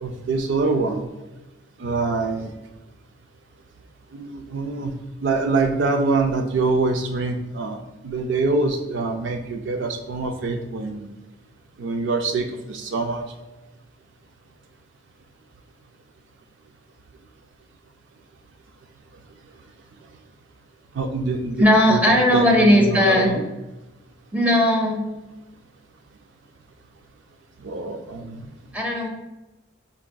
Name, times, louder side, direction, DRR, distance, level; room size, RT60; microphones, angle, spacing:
voice 1, 0.0-1.1 1.8-2.5 4.1-4.9 5.2-11.1 11.8-13.2 20.9-21.6 21.9-23.4 27.6-28.5, right 3 dB, 65° right, 4 dB, 0.4 m, -25 dB
voice 2, 21.6-23.3 24.3-25.0 28.7-29.1, left 1 dB, 10° right, 0 dB, 0.6 m, -17 dB
5.7 x 3.5 x 2.2 m, 1.0 s
head